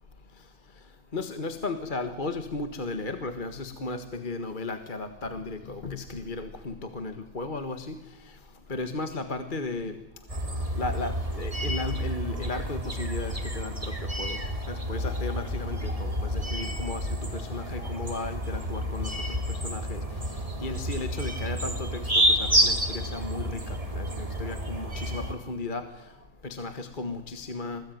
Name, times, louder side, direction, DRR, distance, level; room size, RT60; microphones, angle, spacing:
voice 1, 1.1-8.0 8.7-9.9 10.8-11.1 11.4-13.7 14.2-14.4 14.9-17.0 17.3-19.1 19.6-20.0 20.6-21.9 22.6-23.4 24.0-25.8 26.6-27.8, left 3 dB, 30° left, 8 dB, 1.7 m, -34 dB
sound 1, 10.3-25.3, equal, 20° right, 3.1 m, -29 dB
28.0 x 20.0 x 9.4 m, 0.87 s
omnidirectional pair, 1.9 m